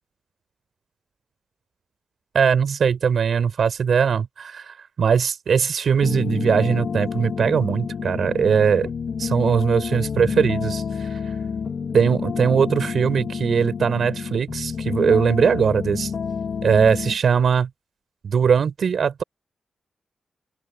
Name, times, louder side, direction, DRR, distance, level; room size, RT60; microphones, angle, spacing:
voice 1, 2.3-8.9 9.2-11.3 11.9-16.1 16.6-17.7 18.2-19.2, right 6 dB, 60° right, 4.2 m, -20 dB
sound 1, 6.0-17.2, left 6 dB, 55° left, 2.3 m, -29 dB
open air
wide cardioid pair, 170°, 0 cm